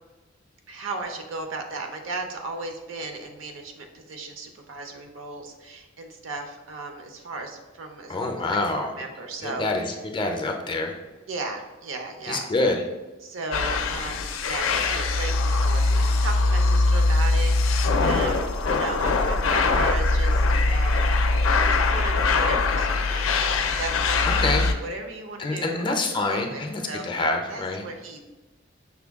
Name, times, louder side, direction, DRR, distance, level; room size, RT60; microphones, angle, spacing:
voice 1, 0.7-9.9 11.3-12.5 13.2-21.4 21.7-23.5 23.8-26.0 26.3-27.2 27.5-28.2, right 3 dB, 75° right, 5 dB, 0.6 m, -36 dB
voice 2, 8.1-8.9 9.4-11.0 12.3-12.8 24.4-24.7 25.4-27.8, left 2 dB, 25° left, 3 dB, 0.4 m, -26 dB
sound 1, 13.5-24.7, left 3 dB, 90° left, 0.4 m, -22 dB
5.6 x 2.2 x 3.4 m, 1.2 s
head